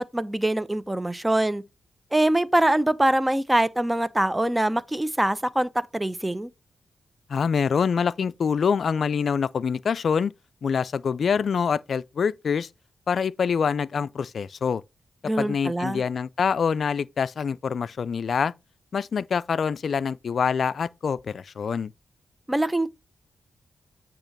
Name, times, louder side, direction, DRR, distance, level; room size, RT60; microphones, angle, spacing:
voice 1, 0.0-1.6 2.1-6.5 15.2-16.0 22.5-22.9, right 1 dB, 15° right, 0.7 m, -24 dB
voice 2, 7.3-10.3 10.6-12.7 13.1-14.8 15.4-18.5 18.9-21.9, left 6 dB, 65° left, 0.4 m, -25 dB
8.8 x 3.0 x 5.9 m
supercardioid pair, 50°, 0 cm